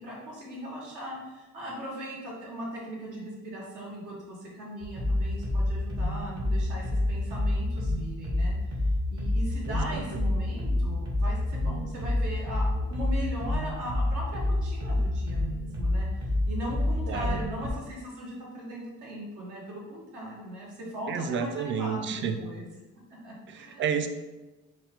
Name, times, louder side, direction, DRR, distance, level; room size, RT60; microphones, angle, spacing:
voice 1, 0.0-8.5 9.1-22.6 23.1-24.0, equal, 85° right, -4 dB, 1.3 m, -39 dB
sound 1, 4.8-17.7, left 1 dB, 60° right, 1.2 m, -28 dB
voice 2, 9.7-10.0 17.1-17.4 21.1-22.4 23.5-24.1, right 7 dB, 40° right, 8 dB, 0.4 m, -30 dB
4.0 x 2.4 x 3.6 m, 1.1 s
cardioid pair, 90°, 30 cm